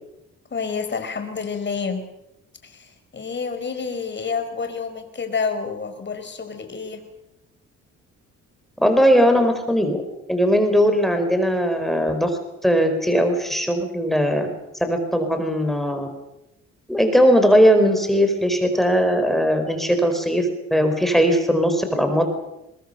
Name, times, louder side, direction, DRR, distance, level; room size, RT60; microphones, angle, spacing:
voice 1, 0.5-2.0 2.6-7.0, left 5 dB, 35° left, 7 dB, 4.7 m, -29 dB
voice 2, 8.8-10.0 10.3-14.5 14.8-16.1 16.9-22.2, equal, ahead, 6 dB, 4.7 m, -19 dB
22.5 x 21.0 x 6.7 m, 0.89 s
cardioid pair, 90°, 30 cm